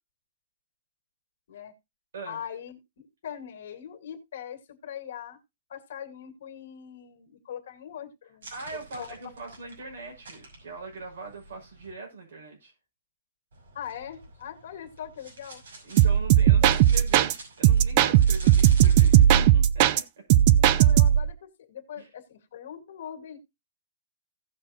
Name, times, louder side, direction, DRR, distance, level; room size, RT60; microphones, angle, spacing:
voice 1, 2.3-5.4 5.7-9.1 13.7-15.6 16.6-16.8 20.6-23.4, left 9 dB, 55° left, 2.0 m, -41 dB
sound 1, 8.4-11.9 13.5-19.5, right 2 dB, 85° right, 5.9 m, -48 dB
voice 2, 8.5-12.7 15.8-20.0 22.0-22.1, right 3 dB, 70° right, 5.8 m, -41 dB
sound 2, 16.0-17.3 17.6-20.0 20.3-21.3, right 11 dB, 30° right, 0.4 m, -18 dB
16.5 x 6.2 x 2.8 m
hypercardioid pair, 175°, 0 cm